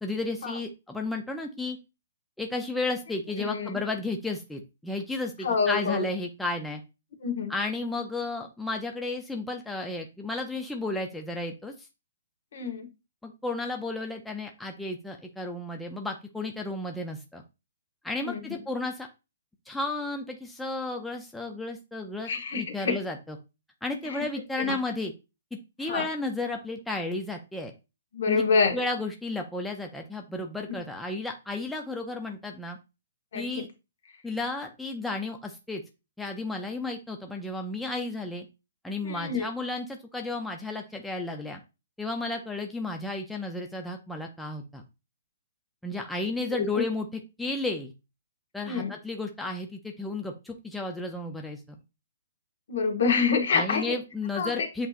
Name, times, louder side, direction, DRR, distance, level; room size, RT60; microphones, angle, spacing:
voice 1, 0.0-1.8 2.4-6.8 7.5-11.9 13.2-17.4 18.0-19.1 19.7-22.3 22.6-23.4 23.8-25.1 25.8-27.7 28.3-28.4 28.7-32.8 33.3-33.7 34.2-35.8 36.2-38.5 38.8-41.6 42.0-44.8 45.8-47.1 47.4-47.9 48.5-51.6 53.5-54.9, left 2 dB, 5° left, 2 dB, 0.4 m, -33 dB
voice 2, 3.4-3.8 5.4-6.0 7.2-7.5 12.5-12.9 18.2-18.4 22.2-23.0 24.0-24.2 24.6-24.7 25.9-26.1 28.1-28.8 30.7-30.8 33.3-33.7 39.0-39.4 46.5-46.8 48.7-48.9 52.7-54.0 54.3-54.7, left 5 dB, 60° left, 4 dB, 1.2 m, -27 dB
7.8 x 2.8 x 2.4 m, 0.27 s
hypercardioid pair, 165°, 0 cm